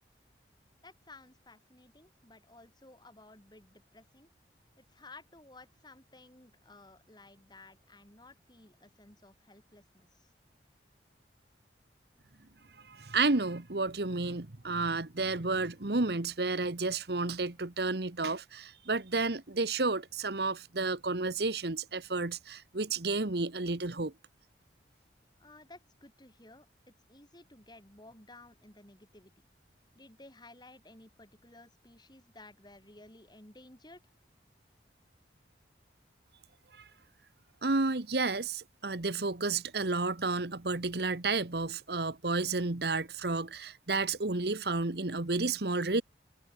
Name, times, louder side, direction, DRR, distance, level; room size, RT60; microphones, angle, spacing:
voice 1, 0.8-4.3 4.8-10.3 25.4-29.3 29.9-34.0, left 2 dB, 25° left, 6.7 m, -55 dB
voice 2, 12.8-24.1 36.7-36.9 37.6-46.0, right 3 dB, 60° right, 1.3 m, -31 dB
head